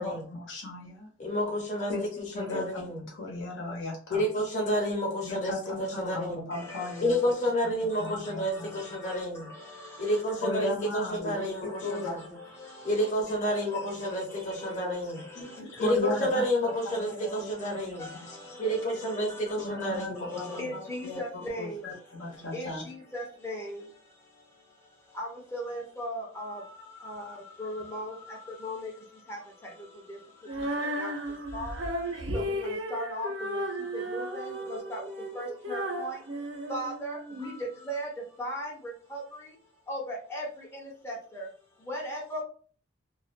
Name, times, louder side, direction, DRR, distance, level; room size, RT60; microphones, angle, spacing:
voice 1, 0.0-1.1 1.9-2.0 2.3-4.2 5.2-7.2 8.0-8.7 10.4-12.2 15.3-16.5 16.9-17.5 18.1-18.2 19.6-21.2 21.6-22.8 30.6-30.7, left 2 dB, 75° left, -1 dB, 0.8 m, -36 dB
voice 2, 1.2-3.0 4.1-6.5 7.0-9.5 10.0-12.2 12.8-15.2 15.8-18.1 18.6-20.7 22.3-22.6, equal, 40° left, -1 dB, 0.8 m, -30 dB
voice 3, 6.5-7.2 7.8-10.4 10.8-10.9 11.3-15.6 16.7-39.6 39.9-41.5 41.8-42.4, equal, 15° left, -3 dB, 0.6 m, -40 dB
Female singing, 30.5-37.5, equal, 90° right, 0.7 m, -34 dB
2.4 x 2.1 x 2.5 m, 0.43 s
head